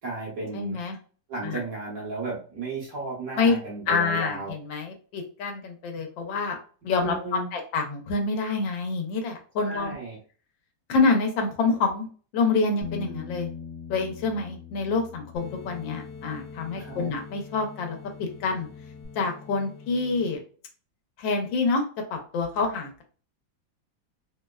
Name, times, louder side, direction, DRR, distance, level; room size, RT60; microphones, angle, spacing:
voice 1, 0.0-0.8 1.3-4.5 6.9-7.5 9.6-10.2 16.7-17.1, right 3 dB, 50° right, -4 dB, 1.6 m, -34 dB
voice 2, 0.5-1.0 1.4-1.6 3.4-3.6 3.9-6.6 6.8-9.9 10.9-12.1 12.3-13.5 13.9-18.7 19.1-20.4 21.2-21.8 22.1-23.0, left 4 dB, 85° left, 3 dB, 1.5 m, -27 dB
Bass guitar, 12.8-17.6 17.9-19.1, left 6 dB, 40° left, 0.4 m, -42 dB
sound 1, 15.4-20.4, left 4 dB, 65° left, 1.3 m, -44 dB
3.9 x 2.1 x 2.2 m, 0.40 s
omnidirectional pair, 2.0 m